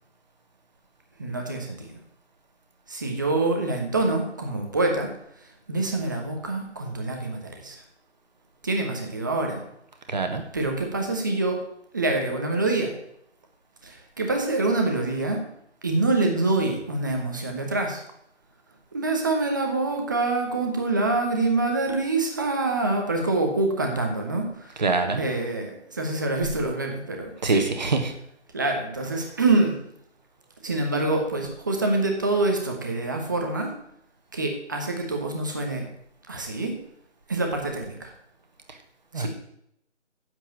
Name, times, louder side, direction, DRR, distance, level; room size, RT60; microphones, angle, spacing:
voice 1, 1.2-1.9 2.9-5.1 5.4-7.8 8.6-9.6 10.5-11.6 11.9-13.0 13.8-15.4 15.8-18.0 18.9-24.9 25.2-27.7 28.5-29.8 30.6-33.7 34.3-35.9 36.3-36.8 37.3-38.1 39.1-39.3, right 2 dB, 15° right, 3 dB, 1.1 m, -26 dB
voice 2, 10.1-10.4 24.8-25.2 27.4-28.1 39.1-39.3, right 3 dB, 35° right, 6 dB, 1.5 m, -24 dB
7.9 x 7.6 x 8.8 m, 0.75 s
figure-of-eight pair, 170°, 36 cm